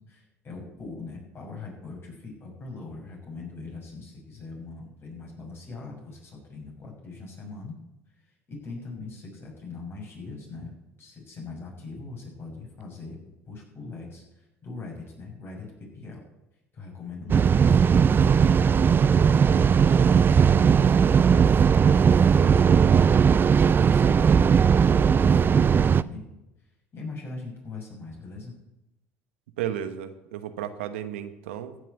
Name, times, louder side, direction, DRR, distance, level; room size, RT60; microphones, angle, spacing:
voice 1, 0.1-7.7 8.1-13.2 13.5-16.2 16.7-21.2 22.2-23.2 23.7-24.5 24.9-26.2 26.9-28.5, left 3 dB, 40° left, -1 dB, 6.4 m, -41 dB
sound 1, 17.3-26.0, right 7 dB, 35° right, 0.4 m, -18 dB
voice 2, 29.6-31.8, right 10 dB, 80° right, 10 dB, 1.0 m, -33 dB
15.0 x 6.1 x 8.1 m, 0.92 s
hypercardioid pair, 70°, 6 cm